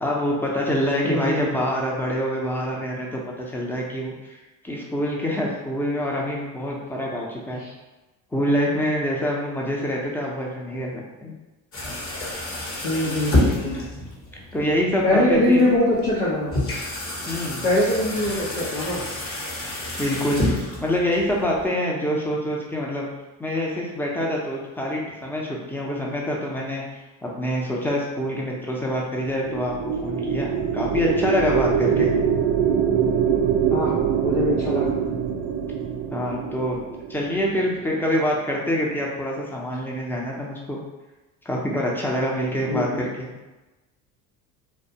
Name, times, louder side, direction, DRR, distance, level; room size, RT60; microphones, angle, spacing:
voice 1, 0.0-7.6 8.3-11.3 14.5-15.6 17.3-17.6 20.0-23.1 23.4-32.1 36.1-36.8 37.1-40.8 41.4-43.3, equal, 5° left, -2 dB, 0.5 m, -26 dB
voice 2, 1.0-1.5 7.6-7.7 12.8-13.8 15.0-16.5 17.6-19.0 31.9-32.1 33.7-34.9 42.7-43.0, left 1 dB, 85° left, -7 dB, 0.8 m, -23 dB
sound 1, 11.7-21.7, left 1 dB, 30° left, 0.9 m, -29 dB
sound 2, 29.3-37.8, right 8 dB, 45° right, 0.4 m, -24 dB
2.3 x 2.2 x 2.7 m, 1.1 s
hypercardioid pair, 70°, 43 cm